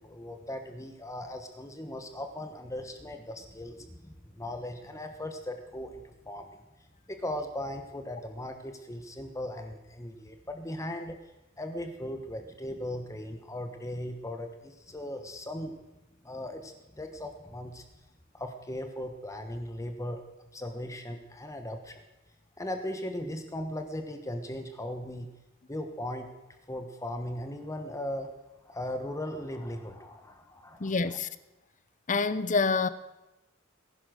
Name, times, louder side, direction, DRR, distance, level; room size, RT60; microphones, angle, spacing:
voice 1, 0.0-6.6 7.1-15.7 16.2-17.8 18.3-20.2 20.5-22.0 22.6-25.3 25.7-26.3 26.7-28.3 28.6-31.2, left 1 dB, 15° left, 1.2 m, -38 dB
voice 2, 30.8-31.3 32.1-32.9, left 4 dB, 35° left, 0.7 m, -26 dB
18.5 x 11.5 x 6.5 m
head